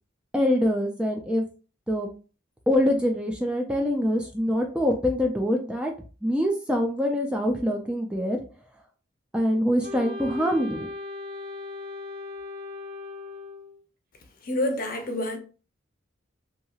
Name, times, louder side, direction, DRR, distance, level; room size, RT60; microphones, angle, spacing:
voice 1, 0.3-1.4 1.9-2.1 2.7-5.9 6.2-8.4 9.3-10.9, equal, 5° right, 0.3 m, -24 dB
Wind instrument woodwind instrument, 9.8-13.8, left 3 dB, 45° right, 0.6 m, -38 dB
voice 2, 14.4-15.4, left 1 dB, 45° left, 0.6 m, -27 dB
2.9 x 2.7 x 2.3 m
head